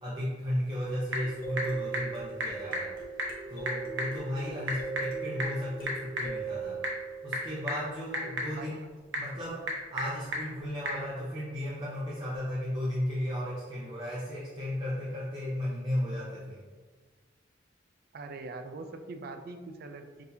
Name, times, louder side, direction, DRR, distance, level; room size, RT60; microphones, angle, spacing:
voice 1, 0.0-2.9 3.5-6.8 7.2-8.8 9.2-16.6, equal, 25° right, -8 dB, 0.8 m, -34 dB
Typing / Telephone, 0.5-11.1, equal, 80° right, 0.9 m, -37 dB
sound 1, 1.2-8.1 12.3-12.4 12.9-13.0, right 5 dB, 50° left, 1.0 m, -39 dB
voice 2, 8.5-8.9 18.1-20.2, right 3 dB, 55° right, 7 dB, 0.4 m, -42 dB
6.1 x 2.7 x 2.7 m, 1.4 s
head